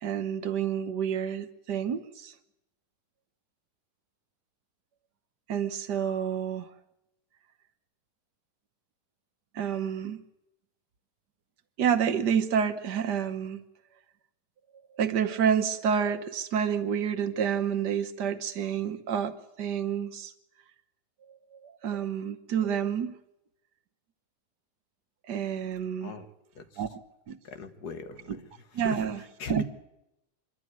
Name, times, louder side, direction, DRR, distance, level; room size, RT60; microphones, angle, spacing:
voice 1, 0.0-2.3 5.5-6.7 9.5-10.2 11.8-13.6 15.0-20.3 21.6-23.1 25.3-26.1 26.8-27.0 27.3-27.4 28.3-28.4 28.7-29.2 29.5-29.6, right 8 dB, 85° right, 1.7 m, -29 dB
voice 2, 27.5-28.3 28.8-29.0 29.4-29.6, left 6 dB, 75° left, 1.8 m, -39 dB
24.5 x 11.5 x 9.5 m
omnidirectional pair, 1.7 m